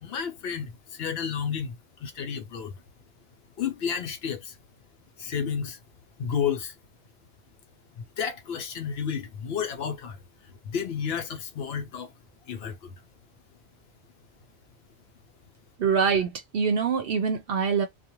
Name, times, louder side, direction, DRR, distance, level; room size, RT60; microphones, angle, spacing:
voice 1, 0.0-2.8 3.6-4.6 5.2-5.8 6.2-6.7 8.0-10.2 10.4-12.1 12.5-12.9, left 7 dB, 70° left, 0.8 m, -31 dB
voice 2, 15.8-17.9, right 6 dB, 65° right, 0.7 m, -24 dB
2.4 x 2.2 x 2.9 m
omnidirectional pair, 1.1 m